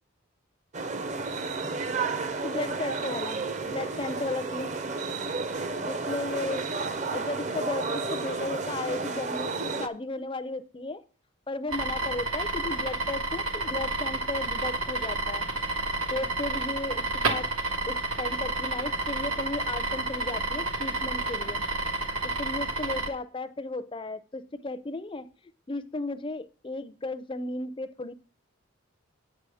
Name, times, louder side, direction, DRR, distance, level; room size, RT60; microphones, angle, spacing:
sound 1, 0.7-9.9, right 3 dB, 35° right, 0.6 m, -32 dB
voice 1, 2.4-4.7 5.8-11.0 11.5-15.5 15.8-17.5 17.9-21.7 22.2-25.3 25.7-28.1, left 2 dB, 25° left, 13 dB, 0.4 m, -35 dB
sound 2, 11.7-23.1, right 2 dB, 85° right, 1.8 m, -30 dB
8.9 x 4.8 x 6.8 m, 0.39 s
head